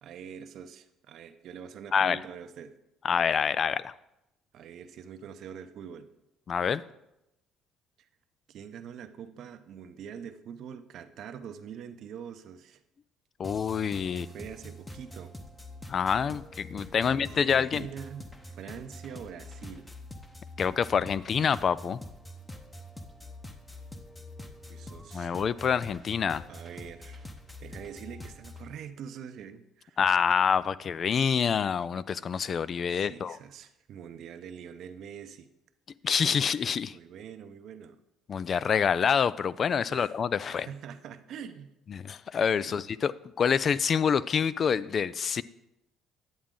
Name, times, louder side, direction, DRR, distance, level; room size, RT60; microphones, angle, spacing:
voice 1, 0.0-2.7 4.5-6.1 8.0-8.1 8.5-12.8 14.1-15.3 16.8-19.9 24.7-25.4 26.5-27.3 27.6-30.0 32.9-35.5 36.9-38.0 39.9-40.1 40.5-41.7 42.6-42.8, right 8 dB, 65° right, 10 dB, 0.7 m, -44 dB
voice 2, 3.0-3.9 6.5-6.8 13.4-14.3 15.9-17.9 20.6-22.0 25.1-26.4 30.0-33.4 36.0-37.0 38.3-40.7 41.9-45.4, left 7 dB, 45° left, 18 dB, 0.3 m, -27 dB
sound 1, 13.4-28.7, left 1 dB, 15° left, 0.9 m, -45 dB
10.5 x 7.2 x 3.7 m, 0.90 s
supercardioid pair, 85°, 0 cm